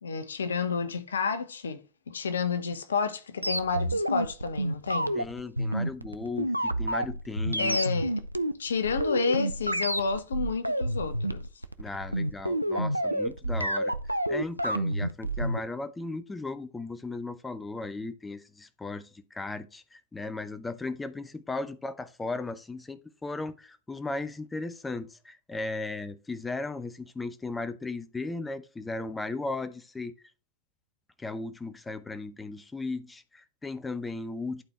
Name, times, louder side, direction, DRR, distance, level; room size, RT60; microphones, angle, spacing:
voice 1, 0.0-5.1 7.6-8.1 8.6-11.5, left 5 dB, 70° left, 0.9 m, -30 dB
sound 1, 3.4-15.6, right 1 dB, 90° right, 0.5 m, -29 dB
voice 2, 5.1-7.8 11.8-13.9 14.3-30.1 31.2-34.6, left 3 dB, 10° left, 0.8 m, -36 dB
11.0 x 4.3 x 3.3 m
figure-of-eight pair, 90°, 0 cm